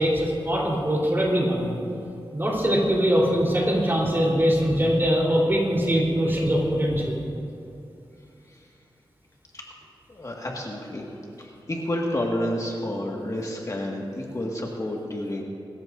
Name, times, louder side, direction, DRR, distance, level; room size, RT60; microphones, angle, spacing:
voice 1, 0.0-1.7 2.3-7.2, equal, 25° right, -3 dB, 3.7 m, -22 dB
voice 2, 10.1-11.1 11.4-15.4, left 1 dB, 40° left, -2 dB, 1.8 m, -30 dB
24.0 x 14.0 x 2.6 m, 2.7 s
wide cardioid pair, 75°, 9 cm